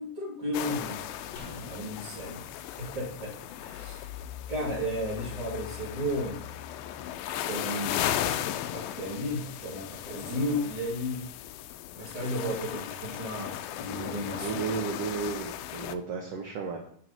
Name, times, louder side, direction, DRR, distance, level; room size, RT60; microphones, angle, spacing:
voice 1, 0.0-2.4 2.8-4.0 4.5-6.4 7.5-8.4 8.7-11.3 12.0-14.6, equal, 50° right, -4 dB, 0.4 m, -34 dB
sound 1, 0.5-16.0, left 11 dB, 85° left, 2.4 m, -36 dB
sound 2, 1.4-4.7 5.0-5.1, left 4 dB, 50° left, 1.2 m, -50 dB
voice 2, 14.4-16.8, right 5 dB, 75° right, 2 dB, 1.4 m, -33 dB
7.7 x 5.5 x 5.5 m, 0.63 s
omnidirectional pair, 4.1 m